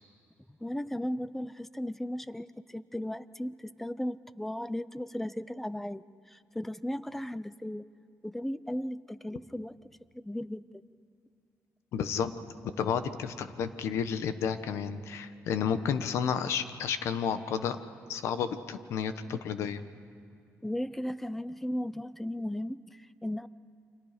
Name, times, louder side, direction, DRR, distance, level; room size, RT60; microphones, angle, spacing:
voice 1, 0.5-7.9 8.2-9.8 10.1-10.8 20.6-23.5, left 1 dB, 5° left, 16 dB, 0.5 m, -36 dB
voice 2, 11.9-12.3 12.8-17.8 18.1-19.8, left 7 dB, 80° left, 11 dB, 1.2 m, -31 dB
29.5 x 25.5 x 5.1 m, 2.5 s
cardioid pair, 135°, 5 cm